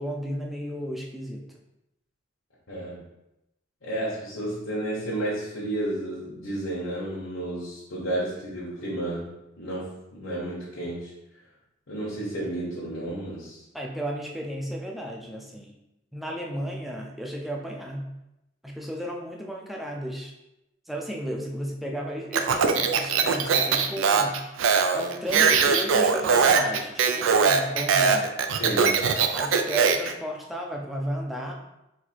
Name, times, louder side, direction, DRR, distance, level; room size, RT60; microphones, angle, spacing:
voice 1, 0.0-1.4 13.7-15.8 16.1-18.1 18.6-20.3 20.9-24.5 24.9-28.3 29.3-31.5, equal, ahead, 0 dB, 0.5 m, -34 dB
voice 2, 2.7-3.0 3.8-11.1 11.9-13.6 28.6-29.1, right 1 dB, 80° left, -8 dB, 1.3 m, -32 dB
Speech, 22.3-30.1, right 5 dB, 80° right, 0.4 m, -21 dB
4.3 x 2.6 x 4.3 m, 0.90 s
head